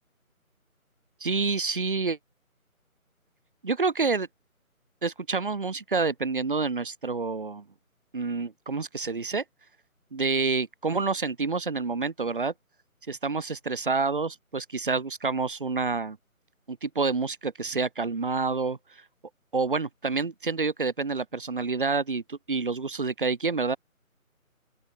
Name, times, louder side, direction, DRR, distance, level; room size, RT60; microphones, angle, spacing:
voice 1, 1.2-2.2 3.6-4.3 5.0-7.6 8.1-9.4 10.1-12.5 13.1-16.2 16.7-18.8 19.5-23.8, right 4 dB, 35° right, 2.3 m, -28 dB
open air
figure-of-eight pair, 160°, 43 cm